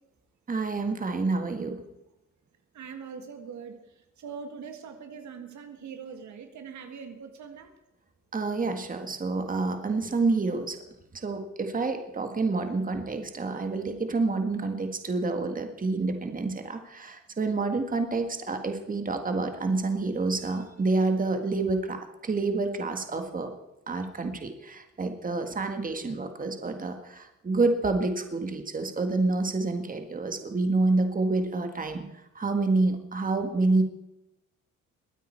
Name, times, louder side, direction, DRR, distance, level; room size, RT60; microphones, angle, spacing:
voice 1, 0.5-1.8 8.3-10.8 11.1-23.5 23.9-32.0 32.4-33.8, right 3 dB, 25° right, 6 dB, 1.8 m, -28 dB
voice 2, 2.7-3.8 4.2-7.7, right 6 dB, 70° right, 6 dB, 1.8 m, -42 dB
22.0 x 9.3 x 4.5 m, 0.93 s
cardioid pair, 90°, 30 cm